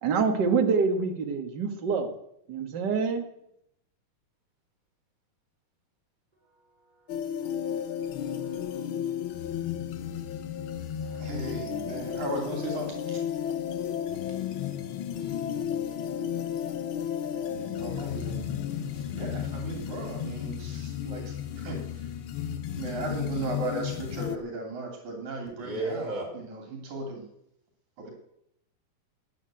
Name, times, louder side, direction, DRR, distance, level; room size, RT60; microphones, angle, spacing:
voice 1, 0.0-2.1 2.5-3.2, right 5 dB, 40° right, 5 dB, 1.8 m, -26 dB
sound 1, 7.1-24.4, left 9 dB, 85° left, 1.1 m, -33 dB
voice 2, 8.4-8.8 25.6-26.3, right 2 dB, 15° right, -1 dB, 4.5 m, -34 dB
voice 3, 11.2-13.2 17.3-22.0 22.8-27.2 28.0-28.1, right 2 dB, 70° right, 2 dB, 4.1 m, -37 dB
14.0 x 9.7 x 7.8 m, 0.77 s
omnidirectional pair, 3.6 m